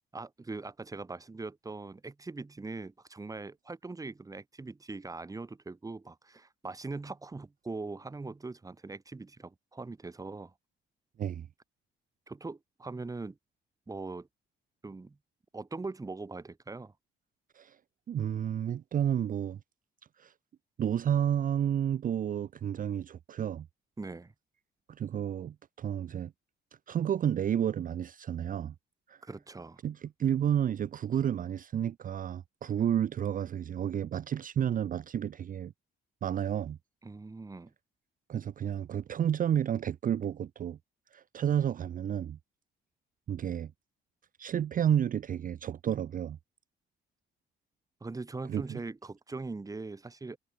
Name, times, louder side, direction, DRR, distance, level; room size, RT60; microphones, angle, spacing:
voice 1, 0.1-10.5 12.3-13.4 13.9-14.3 14.8-15.2 15.5-16.9 24.0-24.3 29.2-29.8 37.0-37.7 48.0-50.4, right 3 dB, 15° right, 1.0 m, -41 dB
voice 2, 18.1-19.6 20.2-20.3 20.8-23.7 24.9-26.3 26.9-28.7 29.1-29.2 29.8-35.7 36.2-36.8 38.3-40.8 41.1-42.4 43.3-43.7 44.4-46.4 48.5-48.8, right 9 dB, 45° right, 0.5 m, -31 dB
cardioid pair, 90°, 20 cm